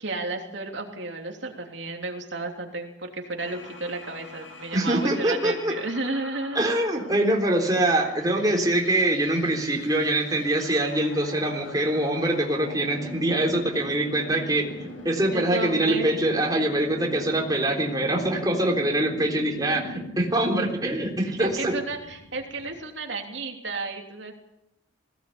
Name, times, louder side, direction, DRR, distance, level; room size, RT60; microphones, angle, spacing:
voice 1, 0.0-6.6 15.3-16.1 20.0-20.1 21.4-24.4, right 3 dB, 70° right, 2 dB, 3.1 m, -32 dB
sound 1, 3.4-22.8, left 1 dB, 80° left, 7.2 m, -42 dB
voice 2, 4.7-5.7 6.6-21.7, right 1 dB, 20° right, 1 dB, 3.6 m, -24 dB
21.0 x 17.0 x 8.7 m, 0.85 s
head